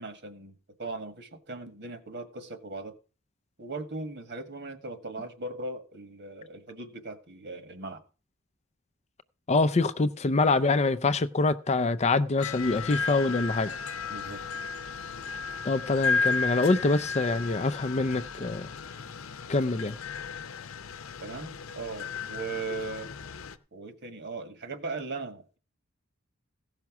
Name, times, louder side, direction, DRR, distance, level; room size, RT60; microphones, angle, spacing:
voice 1, 0.0-2.9 3.6-8.0 14.1-14.4 21.2-23.1 23.7-25.6, right 3 dB, 55° right, 1.6 m, -38 dB
voice 2, 9.5-13.7 15.6-18.7 19.5-20.0, left 3 dB, 30° left, 0.5 m, -25 dB
sound 1, 12.4-23.6, left 4 dB, 85° left, 0.8 m, -34 dB
15.5 x 5.8 x 6.0 m
head